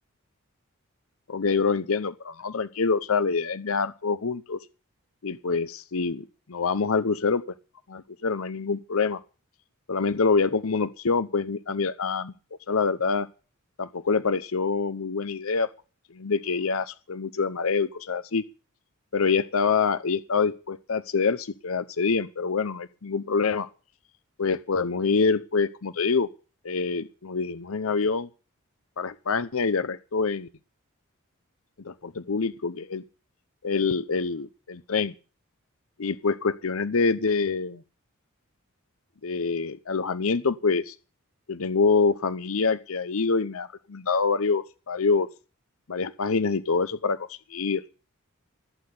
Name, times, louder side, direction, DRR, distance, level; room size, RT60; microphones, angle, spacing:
voice 1, 1.3-4.6 5.2-7.4 7.9-9.2 9.9-12.3 12.7-13.3 13.8-15.7 16.1-18.4 19.1-23.7 24.4-26.3 26.6-28.3 29.0-30.5 31.8-33.0 33.6-35.1 36.0-37.8 39.2-40.9 41.5-45.3 45.9-47.8, left 4 dB, 70° left, 14 dB, 0.7 m, -26 dB
15.5 x 8.7 x 8.0 m, 0.35 s
head